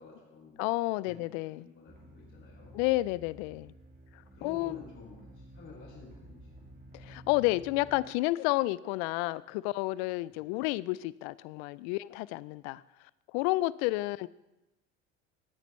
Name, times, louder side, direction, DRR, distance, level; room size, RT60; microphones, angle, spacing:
voice 1, 0.0-2.8 4.2-6.7 10.3-10.5, left 4 dB, 35° left, -4 dB, 5.1 m, -51 dB
voice 2, 0.6-1.7 2.7-3.7 4.1-4.8 6.9-12.8 13.3-14.3, left 19 dB, 65° left, 21 dB, 0.5 m, -31 dB
sound 1, 1.9-8.0, right 1 dB, 25° right, 3.1 m, -52 dB
17.0 x 9.2 x 3.2 m, 0.99 s
hypercardioid pair, 80°, 35 cm